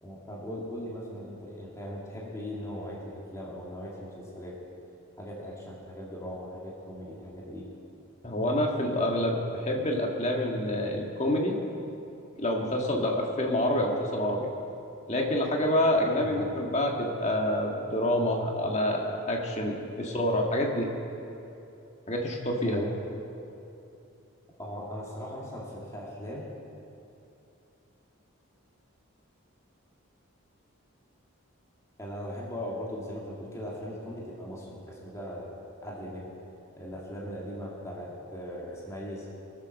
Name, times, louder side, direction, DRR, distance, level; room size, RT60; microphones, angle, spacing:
voice 1, 0.0-4.5 5.2-7.7 16.2-16.5 22.6-23.0 24.6-26.5 32.0-35.5 35.8-36.2 36.8-39.3, equal, 15° left, -5 dB, 2.2 m, -39 dB
voice 2, 8.2-11.5 12.4-14.5 15.1-20.9 22.1-22.8, left 1 dB, 30° left, 0 dB, 1.7 m, -27 dB
21.0 x 7.6 x 6.5 m, 2.8 s
head